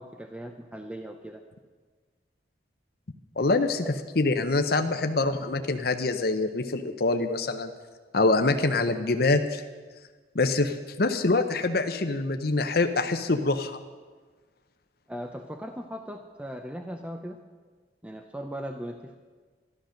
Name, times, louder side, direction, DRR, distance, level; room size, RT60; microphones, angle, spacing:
voice 1, 0.0-1.4 3.8-3.9 15.1-17.4 18.0-19.2, equal, 5° right, 5 dB, 0.6 m, -38 dB
voice 2, 3.4-3.9 4.2-7.7 8.1-9.6 10.3-13.8, left 3 dB, 55° left, 7 dB, 0.8 m, -25 dB
13.0 x 12.0 x 6.5 m, 1.4 s
head